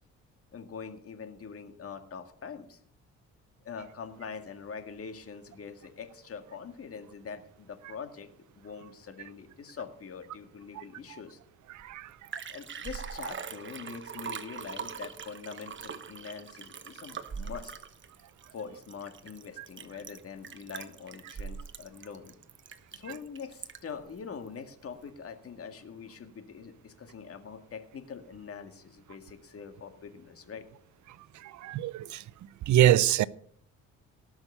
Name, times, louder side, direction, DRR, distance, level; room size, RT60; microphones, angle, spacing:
voice 1, 0.5-2.8 3.6-8.3 8.5-11.4 12.5-17.7 18.5-22.4 22.9-30.7, left 6 dB, 50° left, 2.0 m, -43 dB
voice 2, 11.7-12.2 19.6-19.7 31.3-32.2 32.7-33.2, right 12 dB, 70° right, 0.6 m, -25 dB
Liquid, 11.8-11.9 12.1-24.0 24.5-24.6, right 6 dB, 40° right, 1.2 m, -42 dB
18.5 x 6.3 x 6.8 m
cardioid pair, 90°, 30 cm